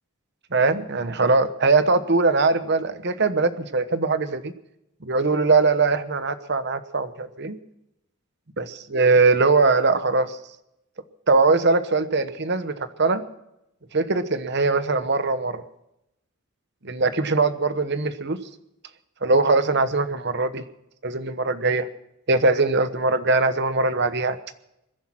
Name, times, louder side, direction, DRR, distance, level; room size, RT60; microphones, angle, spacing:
voice 1, 0.5-4.5 5.0-7.6 8.6-10.4 11.3-13.3 13.9-15.6 16.8-18.4 19.2-20.6 21.0-21.9 22.3-24.4, right 3 dB, 50° right, 12 dB, 1.1 m, -21 dB
22.5 x 10.5 x 6.0 m, 0.84 s
head